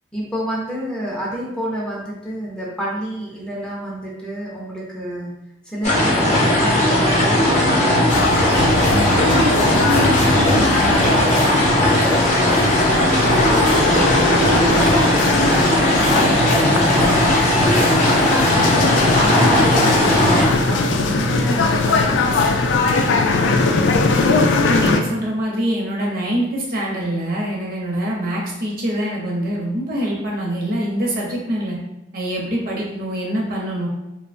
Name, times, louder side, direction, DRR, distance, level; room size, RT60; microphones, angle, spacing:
voice 1, 0.1-5.3 5.6-9.8 10.4-15.1 15.5-18.8 19.2-23.5, right 1 dB, 5° left, -5 dB, 0.5 m, -30 dB
sound 1, 5.8-20.5, left 1 dB, 40° left, 0.7 m, -17 dB
sound 2, 8.1-25.0, left 3 dB, 80° left, 0.3 m, -21 dB
voice 2, 8.7-9.2 24.7-31.8 32.1-33.9, right 1 dB, 55° right, -3 dB, 0.7 m, -24 dB
sound 3, 9.2-14.7, left 1 dB, 90° right, 0.7 m, -26 dB
2.8 x 2.0 x 2.5 m, 0.94 s
head